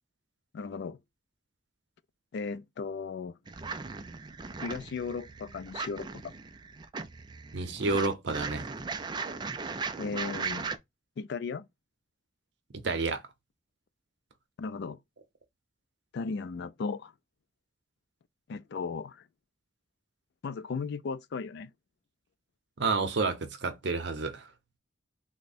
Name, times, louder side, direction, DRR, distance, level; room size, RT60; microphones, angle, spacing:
voice 1, 0.5-1.0 2.3-3.3 4.6-6.2 10.0-10.7 11.2-11.7 14.6-15.0 16.1-17.1 18.5-19.2 20.4-21.7, left 4 dB, 65° left, 0.4 m, -36 dB
sound 1, 3.5-10.8, right 4 dB, 25° right, 0.3 m, -38 dB
voice 2, 7.5-8.6 12.7-13.2 22.8-24.4, right 3 dB, 70° right, 0.7 m, -30 dB
3.5 x 2.1 x 4.0 m
head